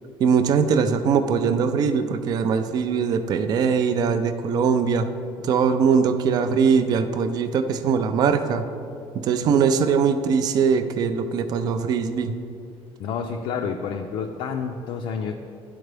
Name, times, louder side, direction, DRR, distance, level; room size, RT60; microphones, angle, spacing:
voice 1, 0.2-5.1 5.4-8.6 9.2-12.3, right 6 dB, 40° right, 9 dB, 0.3 m, -21 dB
voice 2, 13.0-15.3, left 6 dB, 55° left, 3 dB, 0.4 m, -29 dB
11.5 x 4.4 x 3.3 m, 2.6 s
cardioid pair, 170°, 11 cm